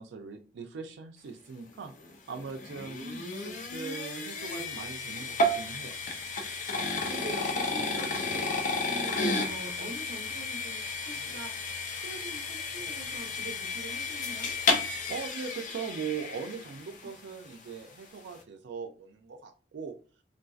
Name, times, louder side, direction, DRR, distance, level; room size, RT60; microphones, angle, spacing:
voice 1, 0.0-1.9 2.3-3.1 3.4-6.0 7.7-8.2 15.0-19.9, right 5 dB, 85° right, 5 dB, 0.4 m, -40 dB
sound 1, 1.9-17.1, left 2 dB, 45° left, 0.5 m, -32 dB
voice 2, 7.0-8.5 8.8-14.5 17.0-17.1, right 1 dB, 60° right, 2 dB, 0.8 m, -44 dB
3.7 x 2.6 x 2.3 m, 0.37 s
head